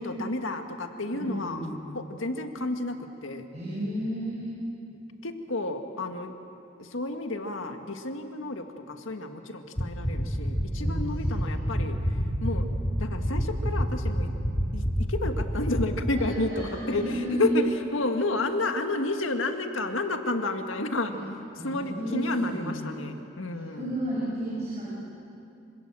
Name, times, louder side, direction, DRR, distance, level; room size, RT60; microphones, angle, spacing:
voice 1, 0.0-1.6 1.9-3.5 5.2-6.3 6.8-12.0 12.4-12.7 13.0-14.3 14.7-21.1 21.6-23.9, left 2 dB, 85° left, 6 dB, 1.8 m, -31 dB
voice 2, 1.1-1.7 3.5-4.5 10.7-11.6 16.5-17.5 21.1-21.2 21.6-22.8 23.5-24.9, equal, 35° right, -7 dB, 6.4 m, -33 dB
sound 1, 9.8-15.8, equal, 25° left, 4.0 m, -26 dB
26.5 x 26.0 x 7.6 m, 2.7 s
head